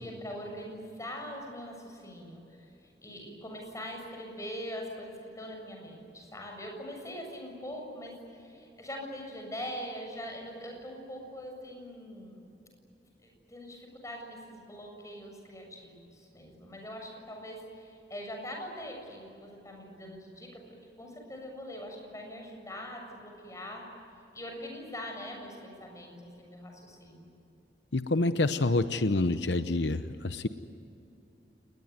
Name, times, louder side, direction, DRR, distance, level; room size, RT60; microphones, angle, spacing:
voice 1, 0.0-12.4 13.2-20.6 21.0-23.9 24.3-27.4, equal, 20° left, 2 dB, 7.1 m, -42 dB
voice 2, 27.9-30.5, left 2 dB, 85° left, 10 dB, 0.9 m, -27 dB
29.5 x 20.5 x 9.5 m, 2.7 s
head